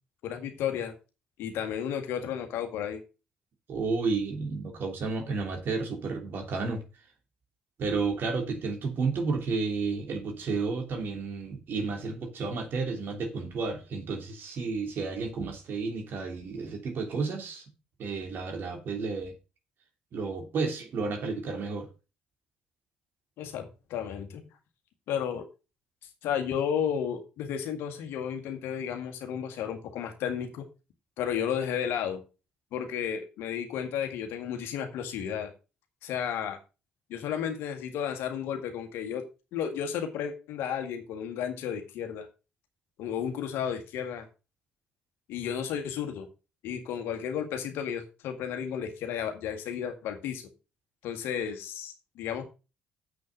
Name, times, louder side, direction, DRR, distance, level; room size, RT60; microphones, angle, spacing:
voice 1, 0.2-0.9 1.4-3.0 23.4-24.4 25.1-25.5 26.2-30.6 31.2-32.2 32.7-35.5 36.0-36.6 37.1-39.2 39.5-42.3 43.0-44.3 45.3-46.3 46.6-50.5 51.0-52.4, left 8 dB, 70° left, 1.9 m, -33 dB
voice 2, 3.7-6.8 7.8-17.6 18.0-19.3 20.1-21.9, right 4 dB, 55° right, 3.1 m, -31 dB
7.5 x 6.4 x 6.5 m
hypercardioid pair, 50°, 4 cm